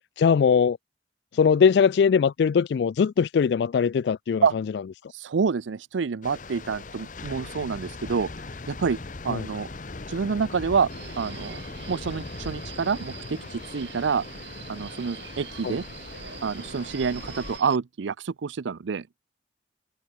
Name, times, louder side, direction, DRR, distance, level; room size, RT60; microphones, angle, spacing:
voice 1, 0.2-0.8 1.3-4.4 9.3-9.4 15.6-15.8, left 6 dB, 65° left, 0.3 m, -21 dB
voice 2, 5.1-8.3 8.7-9.7 10.1-10.9 11.2-11.6 11.9-14.2 14.7-15.8 16.4-19.0, right 5 dB, 85° right, 0.5 m, -27 dB
sound 1, 6.2-17.6, left 3 dB, 45° left, 0.9 m, -40 dB
Subway metro underground, 10.9-17.8, right 7 dB, 70° right, 2.7 m, -44 dB
head